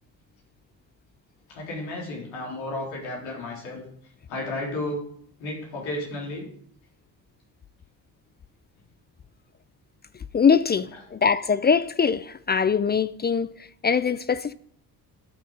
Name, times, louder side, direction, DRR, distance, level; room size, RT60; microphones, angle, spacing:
voice 1, 1.5-3.8 4.3-5.0 5.4-6.5, left 1 dB, 70° left, 4.0 m, -32 dB
voice 2, 10.3-13.5 13.8-14.5, left 6 dB, 20° left, 0.4 m, -22 dB
13.0 x 6.5 x 5.2 m
figure-of-eight pair, 45°, 49 cm